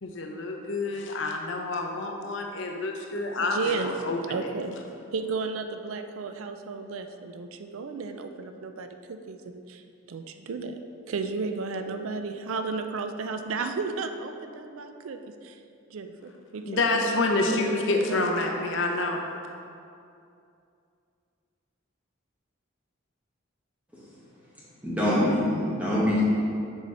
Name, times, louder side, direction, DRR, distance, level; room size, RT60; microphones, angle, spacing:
voice 1, 0.0-4.5 16.6-19.2, left 2 dB, 65° left, 2 dB, 0.7 m, -28 dB
voice 2, 3.4-3.9 4.3-4.8 5.1-9.8 10.1-10.8 11.1-15.6 15.9-17.8 18.1-18.3, right 4 dB, 85° right, 7 dB, 0.4 m, -33 dB
voice 3, 24.8-26.2, left 1 dB, 5° right, -8 dB, 1.5 m, -24 dB
6.5 x 4.8 x 4.1 m, 2.5 s
head